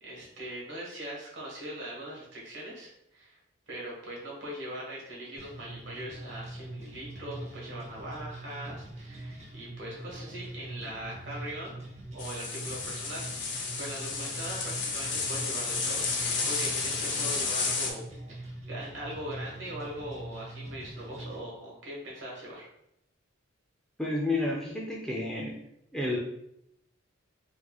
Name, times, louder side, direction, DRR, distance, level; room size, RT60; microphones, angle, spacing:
voice 1, 0.0-3.4 3.7-11.8 12.1-18.0 18.4-22.7, right 1 dB, 60° right, -4 dB, 1.4 m, -41 dB
sound 1, 5.4-21.4, right 1 dB, 30° right, 0.8 m, -43 dB
sound 2, 12.2-17.9, left 4 dB, 55° left, 0.7 m, -32 dB
voice 2, 24.0-25.6 25.9-26.2, left 2 dB, 5° left, -3 dB, 0.4 m, -30 dB
4.5 x 2.8 x 2.3 m, 0.78 s
head